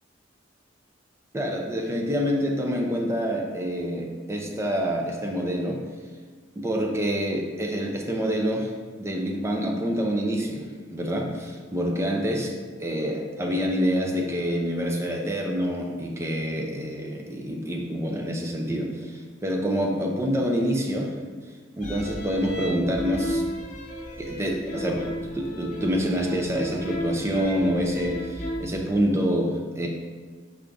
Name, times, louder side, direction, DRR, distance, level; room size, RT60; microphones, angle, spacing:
voice 1, 1.3-5.8 6.6-8.7 9.0-10.7 10.9-12.5 12.8-21.1 21.8-23.4 24.2-29.9, equal, 15° right, 1 dB, 0.5 m, -27 dB
sound 1, 21.8-28.6, equal, 40° left, 0.7 m, -34 dB
6.0 x 3.4 x 2.5 m, 1.5 s
head